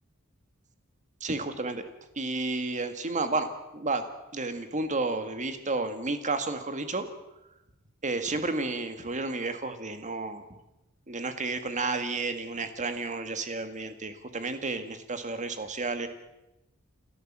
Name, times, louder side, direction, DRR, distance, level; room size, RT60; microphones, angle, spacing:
voice 1, 1.2-1.9 2.2-4.1 4.3-7.1 8.0-10.5 11.1-16.1, right 3 dB, 35° right, 9 dB, 1.9 m, -31 dB
29.0 x 13.5 x 7.5 m, 0.94 s
head